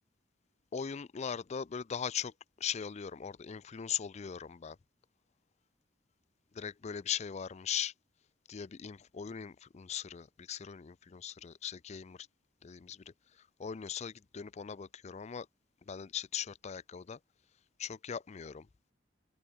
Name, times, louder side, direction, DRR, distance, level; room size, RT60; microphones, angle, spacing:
voice 1, 0.7-2.3 2.6-4.8 6.5-7.9 8.5-12.2 12.6-13.0 13.6-15.5 15.9-17.2 17.8-18.7, left 8 dB, 35° left, 0.4 m, -39 dB
open air
head